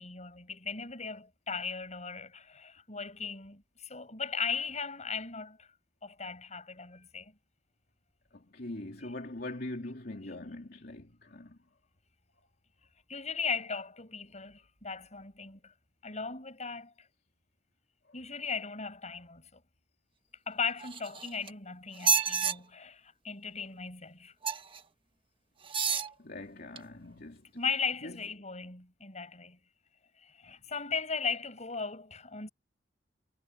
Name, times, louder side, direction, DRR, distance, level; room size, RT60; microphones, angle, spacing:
voice 1, 0.0-5.7 6.0-7.3 9.0-9.1 13.1-15.7 16.0-17.1 18.1-19.6 20.5-24.3 25.9-26.0 27.5-29.6 30.2-32.5, left 5 dB, 40° left, 7.7 m, -37 dB
voice 2, 8.3-11.6 22.2-22.6 26.2-27.5 28.0-28.3, left 2 dB, 60° left, 2.7 m, -42 dB
sound 1, 20.8-21.5 21.9-22.5 24.4-24.8 25.6-26.1 26.8-26.9, right 6 dB, 30° right, 1.4 m, -29 dB
head